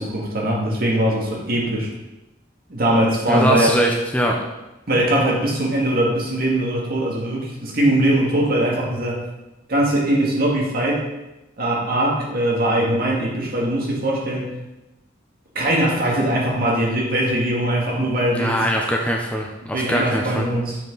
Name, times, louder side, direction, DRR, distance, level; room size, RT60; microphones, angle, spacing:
voice 1, 0.0-1.9 2.7-3.7 4.9-9.2 9.7-11.0 11.6-14.6 15.6-18.6 19.7-20.8, right 1 dB, 50° right, -2 dB, 1.8 m, -21 dB
voice 2, 3.3-4.4 18.3-20.5, equal, 5° left, 0 dB, 0.6 m, -22 dB
7.2 x 5.7 x 3.9 m, 0.99 s
head